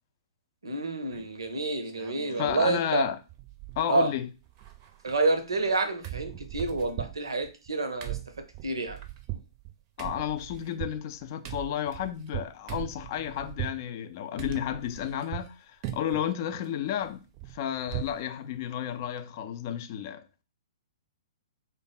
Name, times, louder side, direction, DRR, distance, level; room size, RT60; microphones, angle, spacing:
voice 1, 0.6-3.1 3.9-4.1 5.0-8.2 8.6-9.0, right 3 dB, 75° right, 0.6 m, -28 dB
sound 1, 1.1-1.5 1.8-2.6 2.9-3.0 3.3-4.1 4.4-5.7 6.0-13.8 14.4-15.5 15.8-16.3 16.6-18.2 18.6-18.7 19.0-19.2, right 14 dB, 35° right, 0.5 m, -40 dB
voice 2, 2.4-3.2 3.8-4.3 10.0-17.2 17.5-20.2, left 10 dB, 40° left, 0.4 m, -32 dB
3.3 x 2.0 x 4.0 m
figure-of-eight pair, 115°, 3 cm